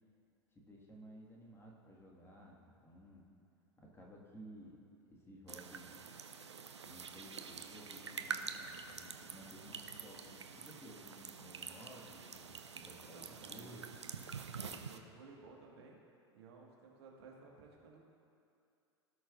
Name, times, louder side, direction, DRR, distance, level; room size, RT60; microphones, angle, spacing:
voice 1, 0.5-3.3 3.8-6.0 6.8-13.9, equal, 15° left, -3 dB, 1.7 m, -56 dB
sound 1, 5.5-15.0, right 5 dB, 85° right, 0.5 m, -47 dB
voice 2, 13.1-14.0 14.7-16.0 16.3-18.1, right 4 dB, 65° right, -1 dB, 1.6 m, -57 dB
17.0 x 6.3 x 2.5 m, 2.5 s
figure-of-eight pair, 85°, 14 cm